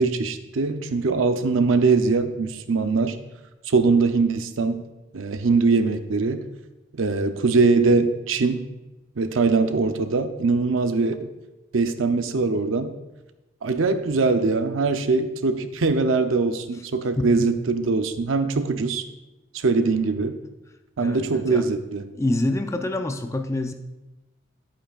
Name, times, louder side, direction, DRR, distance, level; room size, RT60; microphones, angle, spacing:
voice 1, 0.0-3.2 3.7-4.8 5.1-6.4 7.0-8.6 9.2-11.3 11.7-12.9 13.6-19.0 19.5-20.4 21.0-22.1, right 4 dB, 80° right, 8 dB, 0.6 m, -22 dB
voice 2, 17.2-17.5 21.0-21.7 22.1-23.7, left 2 dB, 15° left, 7 dB, 0.4 m, -26 dB
10.5 x 8.6 x 2.4 m, 1.0 s
head